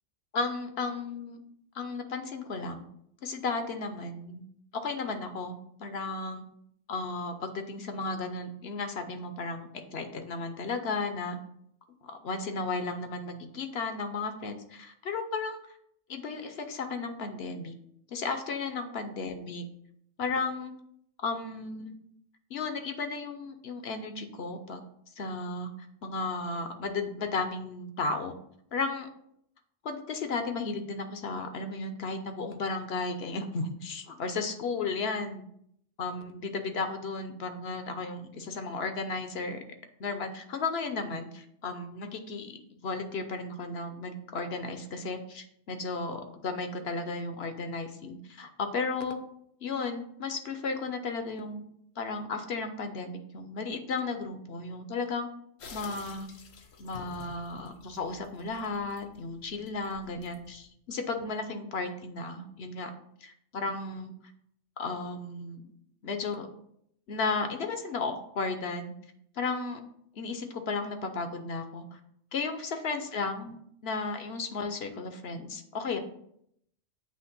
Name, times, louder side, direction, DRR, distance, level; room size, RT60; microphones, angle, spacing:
voice 1, 0.3-1.4 1.7-2.8 3.2-4.4 4.7-6.4 6.9-11.4 12.0-15.6 16.1-17.7 18.1-19.6 20.2-20.7 21.2-22.0 22.5-24.8 25.2-25.7 26.0-28.3 28.7-29.1 29.8-35.4 36.0-39.6 40.0-49.2 49.6-51.6 52.0-55.3 55.7-56.3 56.8-62.9 63.2-64.1 64.8-65.6 66.0-66.5 67.1-68.9 69.3-69.8 70.1-72.0 72.3-76.0, left 3 dB, 60° left, 7 dB, 0.9 m, -34 dB
sound 1, 55.6-60.7, left 5 dB, 85° left, 1.3 m, -50 dB
7.7 x 3.1 x 5.9 m, 0.72 s
omnidirectional pair, 1.3 m